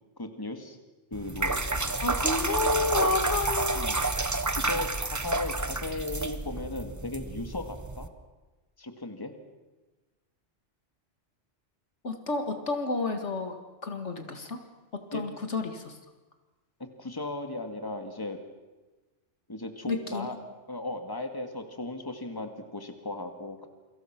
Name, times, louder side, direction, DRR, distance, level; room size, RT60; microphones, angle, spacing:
voice 1, 0.2-0.8 1.1-2.0 3.7-4.0 4.6-8.1 8.8-9.3 15.1-15.2 17.0-18.4 19.5-20.4 20.7-23.7, left 2 dB, 20° left, 5 dB, 2.1 m, -36 dB
sound 1, 1.1-8.1, right 2 dB, 15° right, 0.8 m, -30 dB
voice 2, 2.0-4.1 12.0-13.6 13.8-14.6 14.9-16.0 19.9-20.3, left 3 dB, 70° left, 6 dB, 2.3 m, -30 dB
28.5 x 24.5 x 6.1 m, 1.2 s
omnidirectional pair, 1.3 m